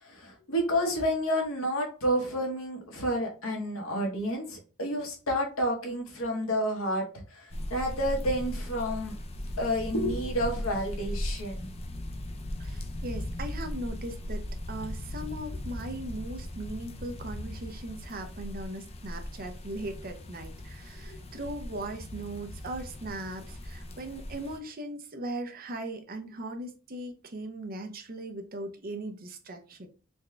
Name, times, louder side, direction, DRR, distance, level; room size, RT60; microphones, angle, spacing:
voice 1, 0.0-9.2 9.6-11.7 21.1-21.2, equal, 80° left, 2 dB, 1.1 m, -30 dB
sound 1, 7.5-24.6, left 1 dB, 30° left, 0.4 m, -38 dB
voice 2, 12.6-29.9, right 1 dB, 45° right, 6 dB, 0.6 m, -39 dB
4.1 x 2.3 x 3.2 m, 0.35 s
head